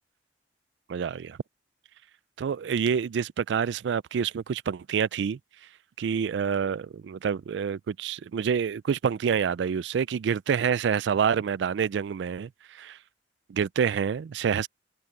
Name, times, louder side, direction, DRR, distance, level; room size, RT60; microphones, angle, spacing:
voice 1, 0.9-1.4 2.4-5.4 6.0-13.0 13.5-14.7, right 7 dB, 75° right, 0.3 m, -27 dB
head